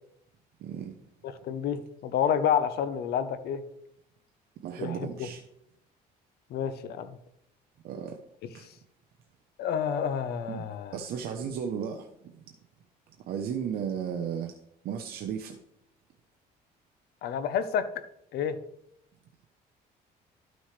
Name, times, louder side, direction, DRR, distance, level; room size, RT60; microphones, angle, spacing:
voice 1, 0.6-0.9 4.6-5.4 7.8-8.2 8.5-8.7 10.5-10.6 10.9-12.3 13.3-14.5 14.8-15.6, right 7 dB, 65° right, 3 dB, 0.8 m, -34 dB
voice 2, 1.2-3.6 4.8-5.3 6.5-7.2 8.4-8.5 9.6-11.0 17.2-17.9 18.3-18.6, left 8 dB, 70° left, 12 dB, 0.9 m, -29 dB
12.0 x 6.2 x 3.3 m, 0.77 s
cardioid pair, 110°, 17 cm